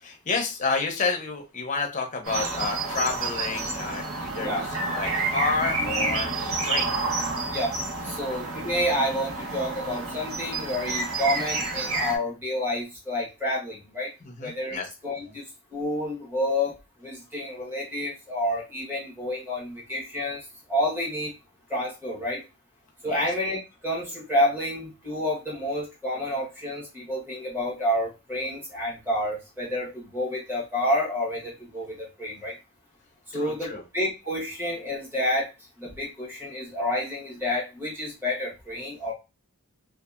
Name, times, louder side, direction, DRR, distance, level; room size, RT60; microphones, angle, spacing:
voice 1, 0.0-6.3 6.6-6.9 8.2-8.4 14.2-14.9 23.0-23.3 33.3-33.8, left 4 dB, 35° left, 2 dB, 0.6 m, -30 dB
sound 1, 2.2-12.2, right 3 dB, 90° right, 0.9 m, -29 dB
voice 2, 8.0-14.1 14.4-16.7 17.0-21.3 21.7-22.4 23.0-32.5 33.3-35.5 35.8-39.1, left 1 dB, 10° right, -4 dB, 1.1 m, -29 dB
2.7 x 2.3 x 2.4 m, 0.28 s
head